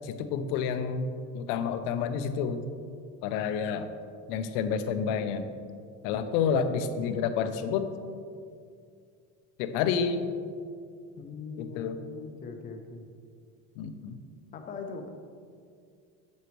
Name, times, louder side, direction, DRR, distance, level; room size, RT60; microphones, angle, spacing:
voice 1, 0.0-1.1 1.3-2.6 3.2-3.9 4.3-5.5 6.0-7.9 9.6-10.3 11.6-11.9 13.8-14.2, left 6 dB, 85° left, 9 dB, 0.7 m, -29 dB
voice 2, 11.2-13.1 14.5-15.1, left 5 dB, 25° left, 4 dB, 0.5 m, -41 dB
8.2 x 7.1 x 3.1 m, 2.2 s
cardioid pair, 175°, 33 cm